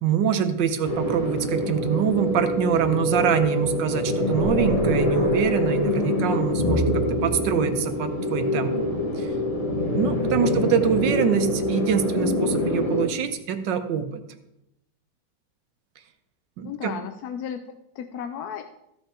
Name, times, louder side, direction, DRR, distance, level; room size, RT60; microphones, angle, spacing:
voice 1, 0.0-8.7 9.2-9.3 9.9-14.2 16.6-16.9, right 7 dB, 75° right, 8 dB, 1.5 m, -25 dB
sound 1, 0.8-13.1, left 1 dB, 25° left, 1.1 m, -25 dB
voice 2, 16.6-18.6, left 8 dB, 70° left, 7 dB, 1.0 m, -34 dB
14.5 x 5.6 x 4.4 m, 0.83 s
omnidirectional pair, 2.0 m